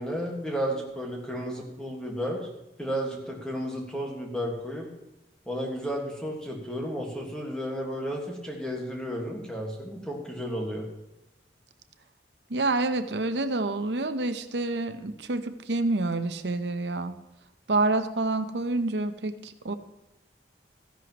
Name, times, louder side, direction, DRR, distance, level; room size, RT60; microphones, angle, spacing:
voice 1, 0.0-2.5 2.8-4.9 5.5-10.9, equal, 5° left, -1 dB, 1.6 m, -33 dB
voice 2, 12.5-17.2 17.7-19.7, right 2 dB, 85° right, 10 dB, 0.8 m, -28 dB
14.5 x 11.0 x 3.0 m, 0.97 s
head